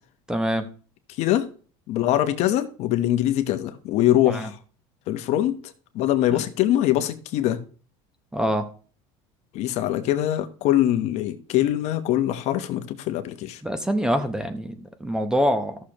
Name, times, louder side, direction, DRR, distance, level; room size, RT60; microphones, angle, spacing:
voice 1, 0.3-0.7 4.2-4.5 6.3-6.5 8.3-8.7 13.6-15.8, equal, 5° right, 0.8 m, -25 dB
voice 2, 1.2-1.5 1.9-4.6 5.1-5.6 5.9-7.6 9.5-13.6, left 13 dB, 55° left, 1.0 m, -23 dB
14.0 x 6.5 x 2.9 m
cardioid pair, 135°, 13 cm